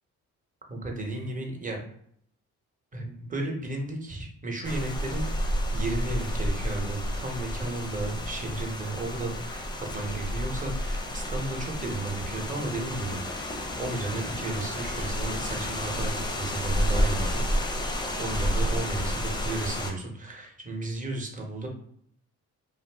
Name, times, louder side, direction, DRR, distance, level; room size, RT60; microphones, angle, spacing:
voice 1, 0.7-1.8 2.9-9.7 9.9-17.7 18.1-21.7, right 2 dB, 25° right, 1 dB, 0.8 m, -34 dB
sound 1, 4.6-19.9, equal, 15° left, 0.5 m, -30 dB
2.5 x 2.4 x 3.3 m, 0.67 s
cardioid pair, 90°, 30 cm